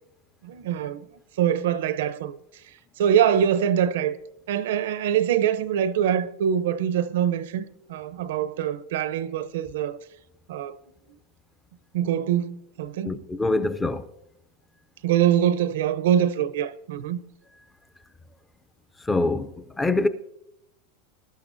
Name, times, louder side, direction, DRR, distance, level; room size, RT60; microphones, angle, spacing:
voice 1, 0.4-1.1 1.4-2.4 3.0-4.2 4.5-7.6 7.9-10.0 10.5-10.8 11.9-13.1 15.0-17.2, right 9 dB, 75° right, 0.6 m, -24 dB
voice 2, 13.0-14.1 19.0-20.1, left 2 dB, 10° left, 0.4 m, -24 dB
20.5 x 12.0 x 2.6 m
supercardioid pair, 170°, 0 cm